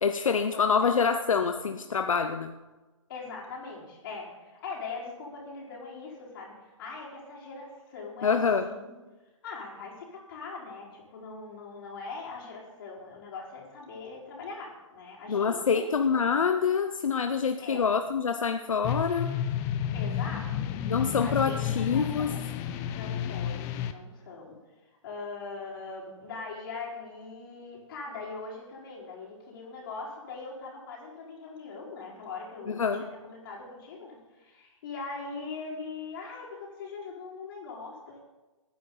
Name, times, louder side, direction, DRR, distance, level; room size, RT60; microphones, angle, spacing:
voice 1, 0.0-2.5 8.2-8.7 15.3-19.3 20.9-22.3 32.7-33.1, left 6 dB, 80° left, 7 dB, 0.9 m, -26 dB
voice 2, 0.5-0.9 1.6-1.7 3.1-8.9 9.4-15.9 17.6-17.9 19.9-22.5 22.9-23.6 23.9-24.6 25.0-38.2, left 4 dB, 40° left, -4 dB, 4.7 m, -41 dB
sound 1, 18.8-23.9, left 9 dB, 15° left, 0.5 m, -31 dB
20.5 x 9.7 x 4.0 m, 1.1 s
hypercardioid pair, 150°, 17 cm